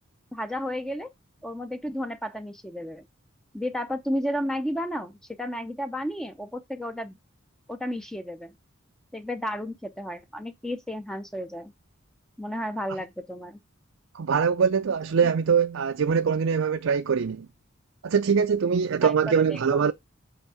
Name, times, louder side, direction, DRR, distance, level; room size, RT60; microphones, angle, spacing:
voice 1, 0.3-1.1 1.4-3.1 3.5-7.2 7.7-8.5 9.1-11.7 12.4-13.6 15.2-15.3 19.0-19.9, equal, 5° left, 0.5 m, -32 dB
voice 2, 14.1-17.5 18.0-19.9, right 6 dB, 65° right, 0.4 m, -23 dB
8.1 x 3.5 x 4.8 m
head